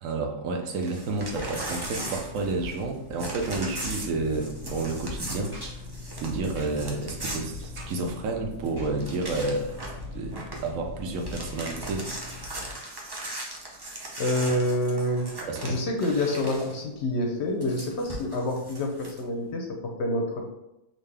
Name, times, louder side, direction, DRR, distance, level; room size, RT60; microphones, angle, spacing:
voice 1, 0.0-5.8 6.2-9.8 10.1-12.1 15.5-15.8, right 3 dB, 75° right, 3 dB, 1.0 m, -30 dB
Crumpling crinkling / Tearing, 0.7-2.9 3.2-8.3 8.6-8.7 9.0-10.0 10.3-10.7 11.0-16.8 17.6-19.2, right 2 dB, 35° right, 0.4 m, -38 dB
Engine, 1.1-12.7, left 3 dB, 10° right, 1.2 m, -41 dB
voice 2, 14.2-15.3 15.6-20.4, left 1 dB, 65° left, 2 dB, 0.8 m, -27 dB
3.8 x 2.7 x 3.3 m, 0.91 s
omnidirectional pair, 1.4 m